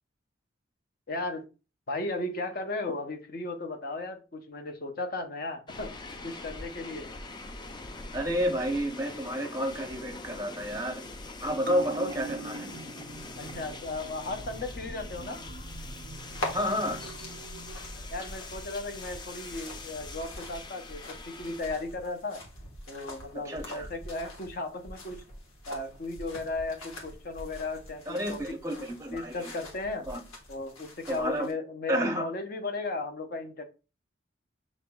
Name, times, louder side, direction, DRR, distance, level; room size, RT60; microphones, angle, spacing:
voice 1, 1.1-1.4 1.9-5.9 6.2-7.1 13.4-15.4 18.1-22.4 22.9-25.2 25.7-28.6 29.1-30.1 30.5-33.6, left 2 dB, 45° left, 0.7 m, -35 dB
sound 1, 5.7-21.6, left 2 dB, 20° left, 0.3 m, -43 dB
voice 2, 8.1-11.0 11.4-12.7 16.5-17.0 23.4-23.9 28.1-29.5 30.1-30.2 31.1-31.5 31.9-32.3, equal, 15° right, 0.7 m, -30 dB
sound 2, 11.6-18.5 18.9-19.0, right 3 dB, 45° right, 0.4 m, -43 dB
sound 3, 16.0-31.5, left 1 dB, 85° left, 1.4 m, -44 dB
6.3 x 2.9 x 2.3 m
head